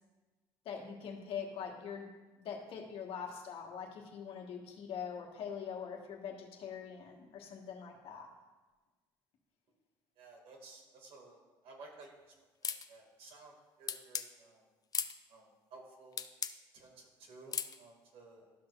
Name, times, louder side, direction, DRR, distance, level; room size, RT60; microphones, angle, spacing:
voice 1, 0.6-8.3, left 7 dB, 60° left, 1 dB, 1.5 m, -43 dB
voice 2, 10.2-14.6 15.3-16.2 16.7-18.5, right 3 dB, 65° right, 0 dB, 2.2 m, -56 dB
sound 1, 12.6-12.9 13.9-14.3 14.9-15.1 16.2-16.5 17.5-17.8, left 7 dB, 35° left, 0.5 m, -36 dB
12.5 x 6.1 x 2.5 m, 1.2 s
hypercardioid pair, 65°, 11 cm